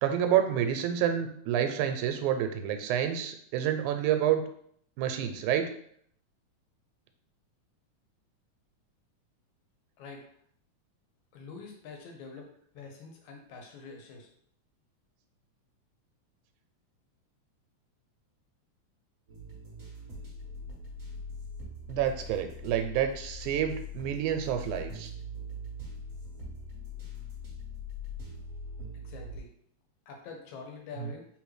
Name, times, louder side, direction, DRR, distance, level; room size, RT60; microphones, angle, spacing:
voice 1, 0.0-4.4 5.0-5.7 21.9-25.1, right 10 dB, 85° right, 6 dB, 2.0 m, -28 dB
voice 2, 11.3-12.5 12.7-14.3 28.9-29.5 30.1-31.3, left 4 dB, 75° left, 2 dB, 2.1 m, -45 dB
sound 1, 19.3-29.4, left 2 dB, 60° right, 0.8 m, -42 dB
4.3 x 3.6 x 3.1 m, 0.64 s
omnidirectional pair, 3.4 m